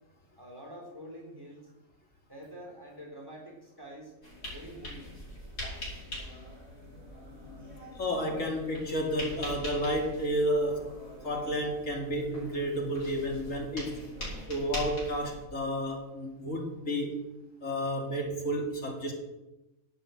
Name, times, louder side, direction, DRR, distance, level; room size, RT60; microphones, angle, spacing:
voice 1, 0.4-1.6 2.3-4.1 4.5-5.1, equal, 15° right, 0 dB, 3.4 m, -46 dB
sound 1, 4.2-15.4, left 1 dB, 90° left, 5.7 m, -43 dB
voice 2, 7.9-10.9 11.2-14.0 14.5-17.2 17.6-19.1, equal, 65° left, 1 dB, 2.7 m, -31 dB
11.0 x 8.6 x 8.0 m, 0.99 s
omnidirectional pair, 1.5 m